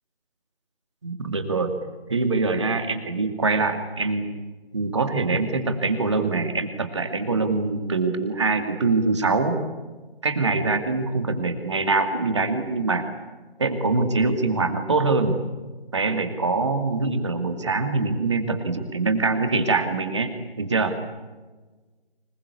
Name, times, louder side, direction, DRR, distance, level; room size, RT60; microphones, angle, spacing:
voice 1, 1.0-1.7 2.1-4.3 4.7-9.6 10.2-13.0 13.6-15.4 15.9-20.3 20.6-20.9, right 3 dB, 30° right, 7 dB, 2.4 m, -24 dB
25.5 x 21.0 x 8.5 m, 1.3 s
figure-of-eight pair, 165°, 31 cm